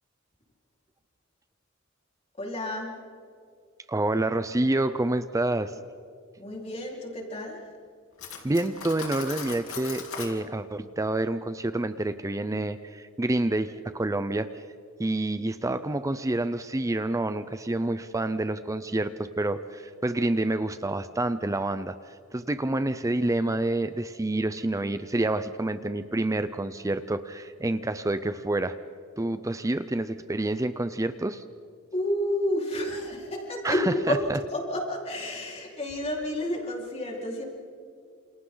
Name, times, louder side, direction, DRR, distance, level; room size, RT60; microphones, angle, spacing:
voice 1, 2.4-3.0 6.4-7.7 31.9-37.4, left 1 dB, 30° left, -2 dB, 4.5 m, -30 dB
voice 2, 3.9-5.7 8.4-14.6 15.0-28.7 29.2-31.4 33.6-34.4, right 2 dB, 15° right, 11 dB, 0.5 m, -28 dB
Cutlery silverware, 8.2-10.4, left 6 dB, 75° left, 3.3 m, -38 dB
28.5 x 28.0 x 4.0 m, 2.4 s
head